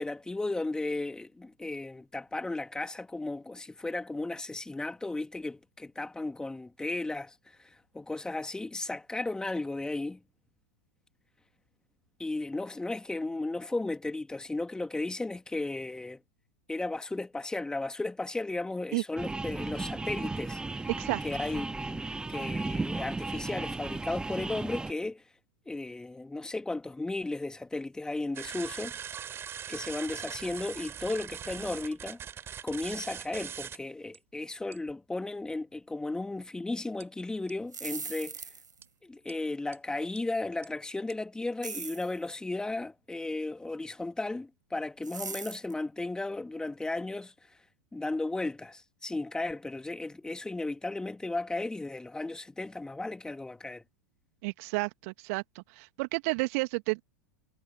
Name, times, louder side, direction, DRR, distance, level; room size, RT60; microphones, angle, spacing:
voice 1, 0.0-10.2 12.2-16.2 16.7-20.9 21.2-25.2 25.7-29.0 29.7-32.2 32.6-38.4 39.0-47.3 47.9-53.8, left 2 dB, 5° left, 2.6 m, -35 dB
sound 1, 19.2-24.9, right 3 dB, 10° right, 1.6 m, -35 dB
sound 2, 28.3-33.8 34.1-34.2 34.7-34.9 37.0-37.1 37.5-37.6 37.9-38.0 38.4-38.5 38.8-38.9 39.3-39.4 39.7-39.8 40.2-40.3 40.6-40.7 41.1-41.2, right 9 dB, 25° right, 3.5 m, -41 dB
sound 3, 37.6-38.8 41.6-42.1 45.0-45.7, right 4 dB, 80° right, 3.7 m, -40 dB
voice 2, 54.4-57.0, right 28 dB, 50° right, 2.2 m, -31 dB
figure-of-eight pair, 90°, 10 cm